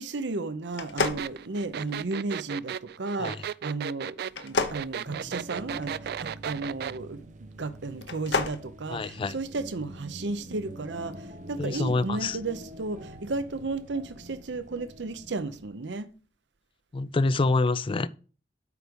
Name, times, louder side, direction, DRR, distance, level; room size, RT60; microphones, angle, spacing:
voice 1, 0.0-4.2 4.4-16.1, right 3 dB, 85° right, 0.7 m, -34 dB
sound 1, 0.7-2.1 4.3-5.9 7.9-8.6, left 4 dB, 80° left, 0.8 m, -30 dB
sound 2, 1.0-7.0, right 8 dB, 60° right, 0.3 m, -35 dB
sound 3, 5.1-15.7, right 1 dB, 45° right, 0.8 m, -45 dB
voice 2, 8.9-9.3 11.6-12.4 16.9-18.1, left 3 dB, 30° left, 0.4 m, -26 dB
8.3 x 4.8 x 5.2 m
head